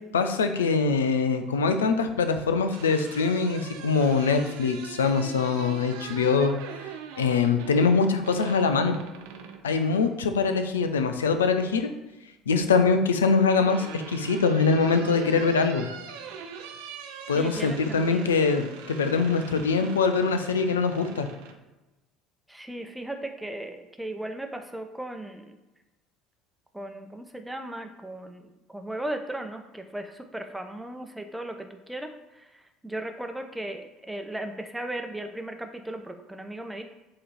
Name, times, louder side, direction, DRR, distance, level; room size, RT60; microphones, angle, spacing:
voice 1, 0.1-6.6 7.2-8.9 9.6-11.9 12.5-15.9 17.3-21.3, left 4 dB, 75° left, 8 dB, 0.5 m, -23 dB
sound 1, 2.7-9.7 11.1-11.8 13.1-21.6, right 7 dB, 65° right, 0.6 m, -42 dB
voice 2, 17.3-18.4 22.5-25.6 26.7-36.8, right 1 dB, 5° right, 5 dB, 0.8 m, -37 dB
7.5 x 3.1 x 4.2 m, 1.1 s
figure-of-eight pair, 60°, 0 cm